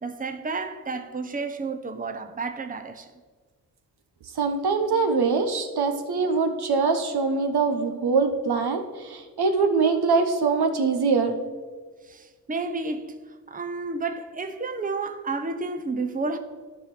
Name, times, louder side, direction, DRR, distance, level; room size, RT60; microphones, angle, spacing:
voice 1, 0.0-3.1 12.0-16.4, right 3 dB, 20° right, 0.9 m, -31 dB
voice 2, 4.4-11.4, right 4 dB, 65° right, 1.1 m, -23 dB
11.5 x 5.0 x 5.9 m
supercardioid pair, 45°, 42 cm